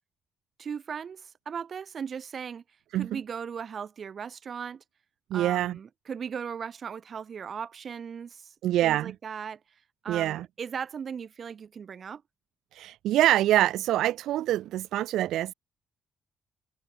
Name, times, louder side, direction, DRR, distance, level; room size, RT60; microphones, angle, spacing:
voice 1, 0.6-2.6 3.0-4.8 5.3-8.5 8.8-9.6 10.0-12.2, right 7 dB, 50° right, 0.8 m, -37 dB
voice 2, 5.3-5.8 8.6-9.2 10.1-10.5 12.8-15.5, right 13 dB, 85° right, 0.5 m, -25 dB
cardioid pair, 90°, 0 cm